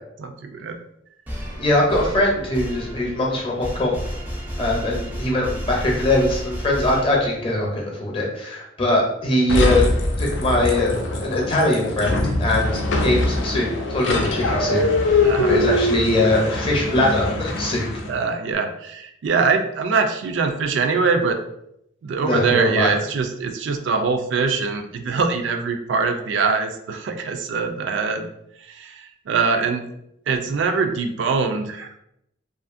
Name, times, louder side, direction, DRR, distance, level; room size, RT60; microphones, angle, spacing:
voice 1, 0.2-0.8 1.9-2.1 15.2-15.6 18.1-21.4 22.0-28.3 28.6-29.9 30.3-32.0, right 4 dB, 80° right, 6 dB, 0.3 m, -23 dB
sound 1, 1.3-7.6, equal, 10° right, 0.4 m, -32 dB
voice 2, 1.5-4.0 4.6-9.9 10.2-10.9 11.2-17.9 22.2-22.9, left 1 dB, 30° left, -2 dB, 0.6 m, -22 dB
sound 2, 9.5-18.2, left 2 dB, 85° left, 0.5 m, -22 dB
2.7 x 2.4 x 2.5 m, 0.77 s
head